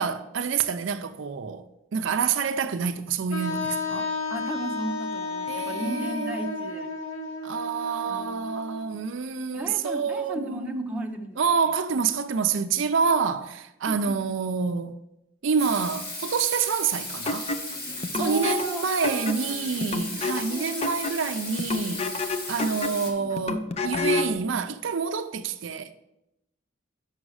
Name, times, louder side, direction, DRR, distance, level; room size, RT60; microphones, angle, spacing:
voice 1, 0.0-1.7 1.9-4.1 5.5-7.0 7.4-11.0 11.4-15.0 15.4-17.5 18.1-22.1 22.5-25.9, right 5 dB, 70° right, 0.4 m, -27 dB
Wind instrument woodwind instrument, 3.3-9.1, left 3 dB, 90° left, 0.9 m, -33 dB
voice 2, 4.3-6.9 8.1-8.5 9.5-11.4 13.9-14.2 18.2-20.2 20.5-21.0, right 1 dB, 5° right, 0.7 m, -35 dB
Water tap faucet / Sink (filling or washing), 15.6-23.1, left 2 dB, 50° left, 1.7 m, -36 dB
sound 1, 17.3-24.4, left 3 dB, 30° left, 0.4 m, -30 dB
6.2 x 5.6 x 6.3 m
head